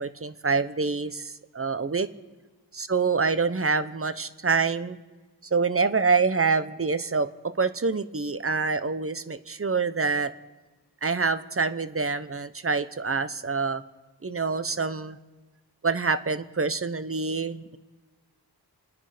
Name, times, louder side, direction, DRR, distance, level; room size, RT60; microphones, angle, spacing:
voice 1, 0.0-2.1 2.7-5.0 5.5-10.3 11.0-13.8 14.2-15.2 15.8-17.8, right 4 dB, 35° right, 13 dB, 0.9 m, -26 dB
29.0 x 9.8 x 5.1 m, 1.2 s
wide cardioid pair, 50°, 39 cm